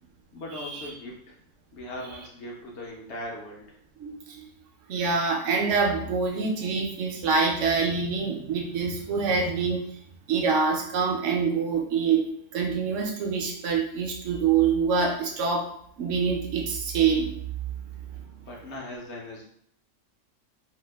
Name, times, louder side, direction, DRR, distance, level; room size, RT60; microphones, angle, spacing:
voice 1, 0.3-1.3 1.7-3.8 18.5-19.4, left 1 dB, 65° left, -2 dB, 0.9 m, -39 dB
voice 2, 4.0-4.5 4.9-9.9 10.3-15.7 16.0-17.3, right 5 dB, 70° right, 1 dB, 0.9 m, -25 dB
2.8 x 2.2 x 3.2 m, 0.66 s
omnidirectional pair, 1.4 m